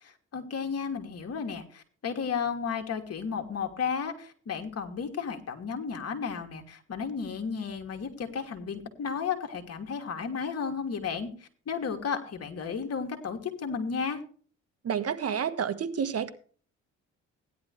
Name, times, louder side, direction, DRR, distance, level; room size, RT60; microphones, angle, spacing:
voice 1, 0.0-14.2, left 6 dB, 55° left, 5 dB, 2.9 m, -33 dB
voice 2, 14.8-16.3, right 7 dB, 55° right, 10 dB, 1.6 m, -29 dB
17.0 x 11.0 x 3.4 m, 0.43 s
cardioid pair, 90°, 30 cm